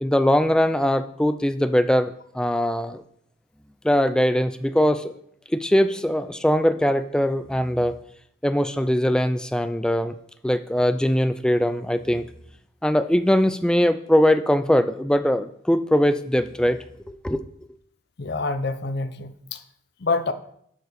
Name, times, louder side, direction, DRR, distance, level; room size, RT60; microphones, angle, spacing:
voice 1, 0.0-3.0 3.8-5.1 5.5-8.0 8.4-10.1 10.4-12.2 12.8-16.8 17.1-17.4, equal, 5° left, 10 dB, 0.3 m, -21 dB
voice 2, 18.2-19.6 20.0-20.3, left 3 dB, 50° left, 10 dB, 0.6 m, -26 dB
10.5 x 4.7 x 5.1 m, 0.69 s
head